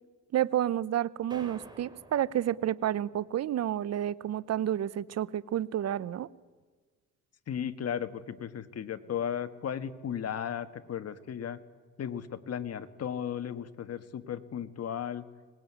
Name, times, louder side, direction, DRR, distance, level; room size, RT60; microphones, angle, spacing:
voice 1, 0.3-6.3, right 11 dB, 60° right, 20 dB, 0.7 m, -30 dB
sound 1, 1.3-3.3, right 2 dB, 15° right, 3.2 m, -51 dB
voice 2, 7.5-11.6 12.0-15.3, left 8 dB, 55° left, 11 dB, 1.5 m, -35 dB
22.0 x 20.0 x 9.5 m, 1.4 s
cardioid pair, 90°, 30 cm